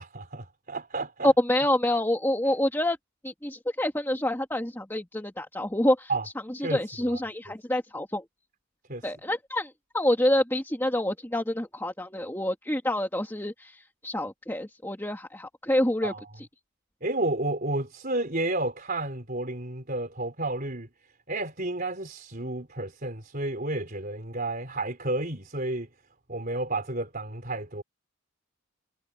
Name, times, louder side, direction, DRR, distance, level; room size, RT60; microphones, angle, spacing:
voice 1, 0.0-1.3 6.1-6.3 6.6-7.2 8.9-9.1 16.0-16.2 17.0-20.9 21.3-25.9 26.3-27.8, right 2 dB, 40° right, 4.1 m, -31 dB
voice 2, 1.2-3.0 3.2-6.1 6.5-8.2 9.0-16.1, left 1 dB, 10° left, 2.1 m, -27 dB
head